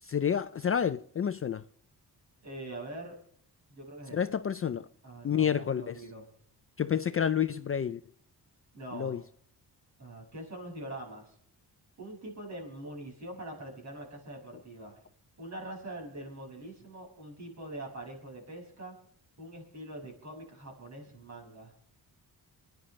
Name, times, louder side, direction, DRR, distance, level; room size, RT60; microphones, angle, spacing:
voice 1, 0.0-1.6 4.1-4.9 5.2-6.0 6.8-8.0 8.9-9.2, left 8 dB, 35° left, 0.4 m, -29 dB
voice 2, 2.4-3.2 3.7-4.2 5.0-6.3 8.7-9.2 10.0-11.4 12.0-15.0 15.4-19.0 19.4-21.7, right 1 dB, 40° right, 6.0 m, -43 dB
29.5 x 10.0 x 3.2 m
wide cardioid pair, 160°, 40 cm